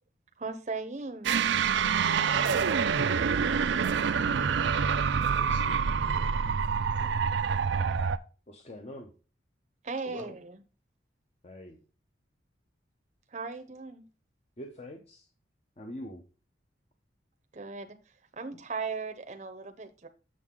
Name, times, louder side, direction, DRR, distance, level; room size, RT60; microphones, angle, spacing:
voice 1, 0.4-1.4 9.8-10.6 13.3-14.1 17.5-18.0 18.4-20.1, right 4 dB, 40° right, 7 dB, 0.7 m, -37 dB
sound 1, 1.2-8.2, right 6 dB, 75° right, 0.4 m, -26 dB
voice 2, 2.4-2.8 5.3-6.4 6.9-7.1 10.0-10.4, left 2 dB, 90° left, -3 dB, 4.4 m, -47 dB
voice 3, 8.5-9.1 11.4-11.8 14.6-15.3 15.8-16.2, left 1 dB, 35° left, 3 dB, 0.8 m, -44 dB
7.4 x 6.3 x 3.7 m, 0.35 s
head